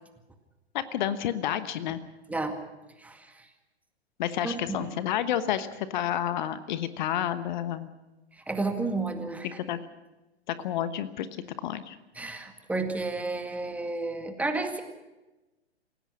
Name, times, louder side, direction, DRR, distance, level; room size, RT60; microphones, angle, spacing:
voice 1, 0.7-2.0 4.2-7.9 9.4-9.8 10.5-11.3 11.6-12.0, left 11 dB, 45° left, 13 dB, 1.2 m, -30 dB
voice 2, 4.4-4.8 8.5-9.6 12.2-14.8, right 3 dB, 5° right, 6 dB, 2.0 m, -31 dB
28.0 x 16.5 x 6.3 m, 1.1 s
figure-of-eight pair, 110°, 33 cm